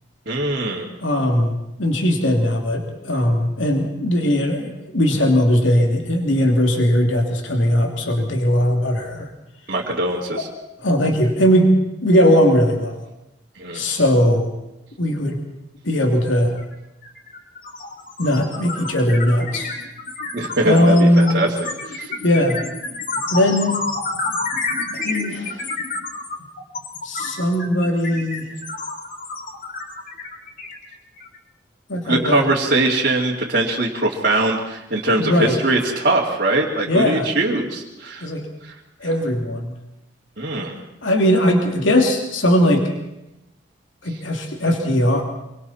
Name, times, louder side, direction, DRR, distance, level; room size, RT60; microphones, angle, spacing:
voice 1, 0.3-0.9 9.7-10.5 13.5-13.8 20.3-21.5 21.8-22.1 32.0-38.3 38.6-38.7 40.4-40.8, right 2 dB, 50° right, -6 dB, 2.5 m, -22 dB
voice 2, 1.0-9.3 10.3-10.4 10.8-11.7 12.0-13.0 13.7-14.5 15.0-15.4 15.8-16.6 18.2-19.7 20.6-21.4 22.2-22.6 23.3-23.7 24.9-25.6 27.0-28.5 31.9-32.5 35.2-35.6 36.9-37.3 38.2-38.5 39.0-39.7 41.0-42.8 44.0-45.2, equal, 80° left, 2 dB, 2.8 m, -19 dB
sound 1, 16.6-16.7 17.0-31.4, left 3 dB, 45° left, 2.8 m, -29 dB
26.0 x 24.0 x 4.3 m, 0.91 s
head